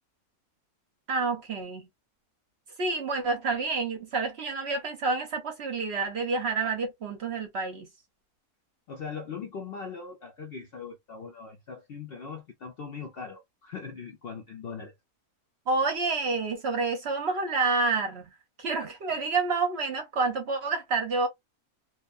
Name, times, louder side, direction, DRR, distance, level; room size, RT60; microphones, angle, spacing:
voice 1, 1.1-1.9 2.8-7.9 15.7-18.3 18.6-21.3, right 4 dB, 55° right, 0.8 m, -28 dB
voice 2, 8.9-14.9, left 5 dB, 60° left, 0.6 m, -40 dB
2.7 x 2.2 x 2.4 m
omnidirectional pair, 1.5 m